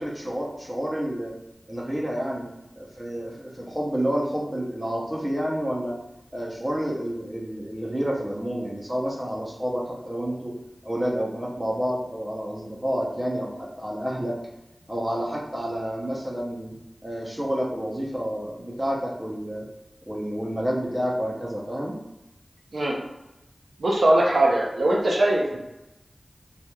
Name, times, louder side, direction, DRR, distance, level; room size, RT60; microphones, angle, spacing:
voice 1, 0.0-1.3 1.7-2.5 2.8-5.9 6.3-10.6 10.8-14.3 14.9-16.7 17.0-19.7 20.0-22.0 24.4-24.5, equal, 15° right, -4 dB, 0.6 m, -29 dB
voice 2, 23.8-25.6, right 1 dB, 90° right, -3 dB, 0.5 m, -21 dB
2.9 x 2.3 x 2.2 m, 0.94 s
wide cardioid pair, 75°, 0 cm